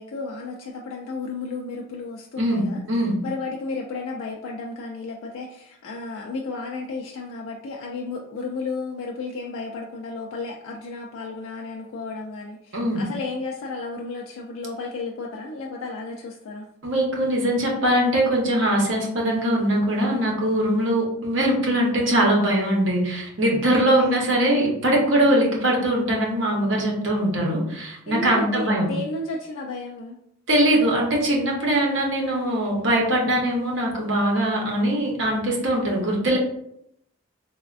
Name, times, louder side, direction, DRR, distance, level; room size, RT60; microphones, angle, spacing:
voice 1, 0.0-16.7 20.8-20.9 24.0-24.1 28.1-30.2, left 3 dB, 80° left, -1 dB, 0.3 m, -33 dB
voice 2, 2.4-3.2 12.7-13.0 16.8-28.9 30.5-36.4, right 1 dB, 65° right, -1 dB, 0.8 m, -21 dB
3.3 x 2.1 x 2.4 m, 0.75 s
head